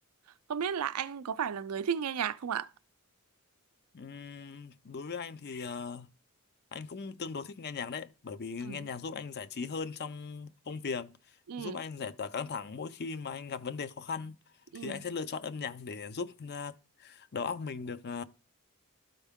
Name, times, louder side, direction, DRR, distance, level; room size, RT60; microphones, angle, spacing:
voice 1, 0.5-2.7 8.6-8.9 11.5-11.8 14.7-15.0, right 7 dB, 90° right, 0.5 m, -34 dB
voice 2, 3.9-6.1 6.7-11.1 11.6-14.4 14.7-18.2, left 5 dB, 50° left, 0.5 m, -38 dB
12.5 x 4.5 x 3.6 m
head